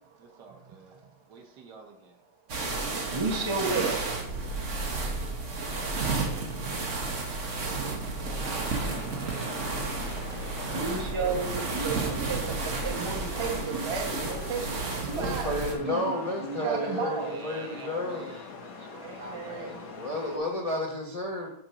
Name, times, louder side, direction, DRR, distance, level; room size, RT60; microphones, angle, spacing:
voice 1, 0.2-1.0 1.3-2.2 4.6-6.9 8.1-12.5 12.8-13.5 17.1-20.7, right 4 dB, 60° right, 2 dB, 1.6 m, -50 dB
sound 1, 2.5-15.7, right 3 dB, 45° right, 1.2 m, -32 dB
voice 2, 3.1-4.0 10.7-15.5 15.8-17.4 19.0-19.8, right 4 dB, 20° right, 1 dB, 0.7 m, -32 dB
sound 2, 8.4-20.4, left 4 dB, 50° left, 1.4 m, -43 dB
voice 3, 15.2-18.3 19.6-21.5, left 1 dB, 30° left, -1 dB, 0.6 m, -32 dB
6.3 x 4.6 x 5.7 m, 0.73 s
omnidirectional pair, 2.1 m